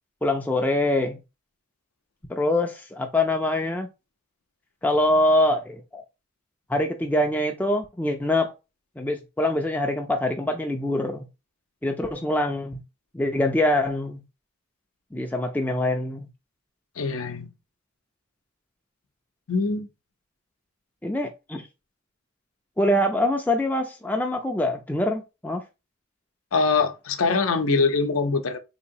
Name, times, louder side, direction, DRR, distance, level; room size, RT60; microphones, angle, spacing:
voice 1, 0.2-1.2 2.3-3.9 4.8-6.0 6.7-8.5 9.0-11.3 11.8-12.8 13.1-14.2 15.1-16.3 21.0-21.7 22.8-25.6, left 1 dB, 10° left, 0.4 m, -24 dB
voice 2, 17.0-17.5 19.5-19.9 26.5-28.6, left 4 dB, 75° left, 0.6 m, -23 dB
3.8 x 2.9 x 2.6 m
head